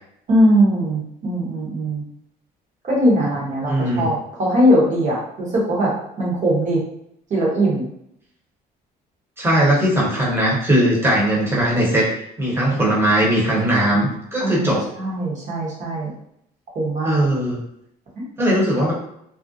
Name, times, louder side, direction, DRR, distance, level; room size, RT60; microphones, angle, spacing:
voice 1, 0.3-2.0 2.8-5.9 6.2-6.8 7.3-7.9 14.4-16.1 16.7-17.2 18.2-18.3, equal, 45° right, -4 dB, 1.0 m, -20 dB
voice 2, 3.7-4.1 9.4-12.1 12.4-14.9 17.0-17.6 18.4-18.9, right 1 dB, 15° right, -5 dB, 1.0 m, -19 dB
2.4 x 2.1 x 2.6 m, 0.74 s
cardioid pair, 110°, 17 cm